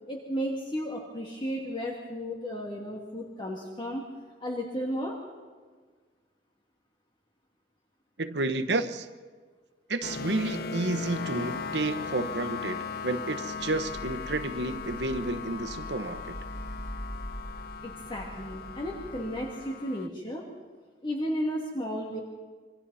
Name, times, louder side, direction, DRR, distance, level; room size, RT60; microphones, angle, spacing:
voice 1, 0.1-4.0 4.4-5.1 17.8-20.4 21.0-22.2, equal, 25° left, -2 dB, 2.5 m, -33 dB
voice 2, 8.2-9.1 9.9-16.4, right 2 dB, 70° right, 9 dB, 1.2 m, -31 dB
sound 1, 10.0-20.1, left 5 dB, 55° left, 0.7 m, -38 dB
sound 2, 13.5-19.5, equal, 5° left, 4.5 m, -43 dB
27.5 x 25.0 x 4.2 m, 1.5 s
head